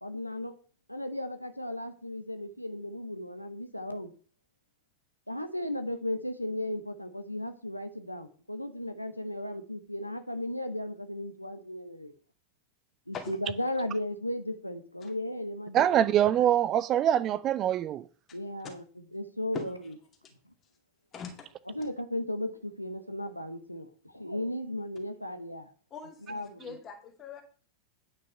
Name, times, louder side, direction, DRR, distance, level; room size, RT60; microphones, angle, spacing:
voice 1, 0.0-0.5 0.9-4.1 5.3-12.1 13.1-16.1 18.3-18.8 19.1-19.9 21.7-25.7 26.3-26.7, left 1 dB, 90° left, 0.8 m, -35 dB
voice 2, 15.7-18.0, right 11 dB, 30° right, 0.4 m, -24 dB
voice 3, 21.1-21.5 25.9-27.4, left 6 dB, 30° left, 2.1 m, -41 dB
9.1 x 5.7 x 5.2 m
figure-of-eight pair, 90°, 0 cm